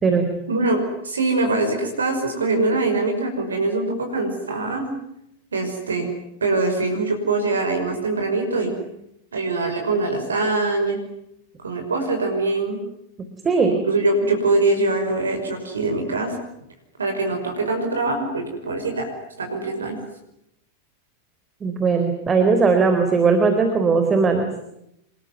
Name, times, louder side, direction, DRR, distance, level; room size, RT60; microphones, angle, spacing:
voice 1, 0.5-4.9 5.5-6.1 6.4-8.8 9.3-11.0 11.6-12.8 13.8-16.4 17.0-19.1 19.4-20.0, right 2 dB, 75° right, 4 dB, 5.6 m, -23 dB
voice 2, 13.4-13.8 21.6-24.5, right 4 dB, 20° right, 6 dB, 4.1 m, -18 dB
27.5 x 22.0 x 9.5 m, 0.80 s
figure-of-eight pair, 90°, 0 cm